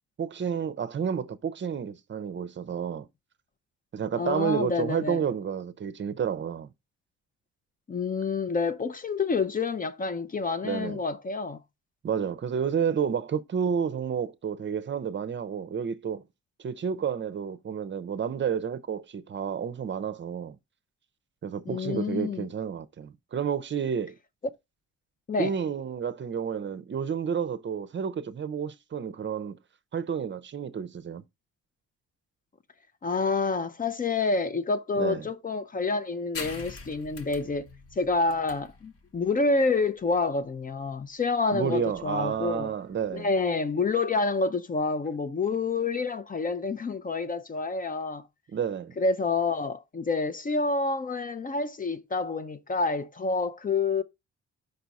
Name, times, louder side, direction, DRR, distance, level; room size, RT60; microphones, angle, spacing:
voice 1, 0.2-3.1 3.9-6.7 10.6-11.0 12.0-16.2 16.6-20.6 21.4-24.2 25.4-29.6 29.9-31.2 35.0-35.3 41.5-43.3 48.5-48.9, right 7 dB, 40° right, 0.6 m, -30 dB
voice 2, 4.1-5.2 7.9-11.6 21.7-22.5 25.3-25.5 33.0-37.7 38.0-42.7 43.1-48.2 49.0-54.0, left 4 dB, 30° left, 0.5 m, -28 dB
sound 1, 36.3-43.5, left 4 dB, 50° left, 1.1 m, -45 dB
5.4 x 4.5 x 4.1 m
cardioid pair, 90°, 30 cm